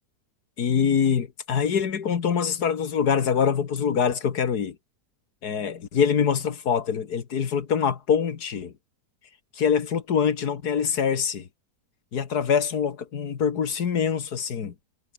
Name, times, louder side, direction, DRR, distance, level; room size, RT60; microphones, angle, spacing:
voice 1, 0.6-4.8 5.4-8.7 9.6-11.5 12.1-14.7, left 7 dB, 80° left, 2.1 m, -24 dB
omnidirectional pair, 1.7 m